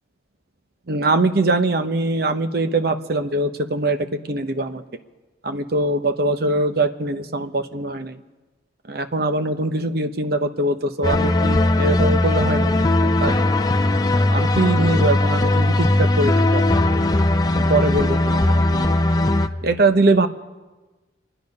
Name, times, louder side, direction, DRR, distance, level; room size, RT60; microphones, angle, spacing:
voice 1, 0.9-4.0 4.3-4.8 5.4-8.2 8.9-13.3 14.3-16.6 17.5-18.9 19.6-20.3, right 2 dB, 55° right, 8 dB, 0.8 m, -22 dB
sound 1, 11.0-19.5, left 1 dB, 20° left, 0.5 m, -18 dB
26.0 x 10.0 x 5.4 m, 1.2 s
head